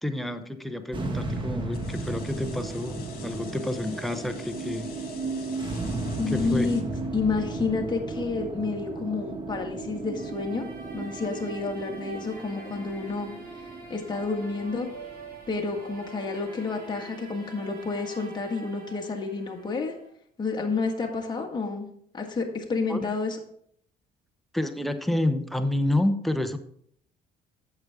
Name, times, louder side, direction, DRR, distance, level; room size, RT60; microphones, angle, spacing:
voice 1, 0.0-4.9 6.3-6.7 22.9-23.1 24.5-26.6, left 1 dB, ahead, 7 dB, 0.7 m, -29 dB
sound 1, 0.9-17.3, right 3 dB, 30° right, 1.4 m, -35 dB
sound 2, 1.7-6.8, left 7 dB, 60° left, 1.8 m, -48 dB
voice 2, 6.2-10.7 10.9-13.3 13.9-14.9 15.5-20.0 20.4-21.9 22.1-23.4, left 4 dB, 25° left, 1 dB, 1.8 m, -30 dB
sound 3, 10.1-20.1, right 3 dB, 65° right, 3.1 m, -45 dB
8.8 x 7.1 x 3.6 m, 0.66 s
cardioid pair, 110°, 17 cm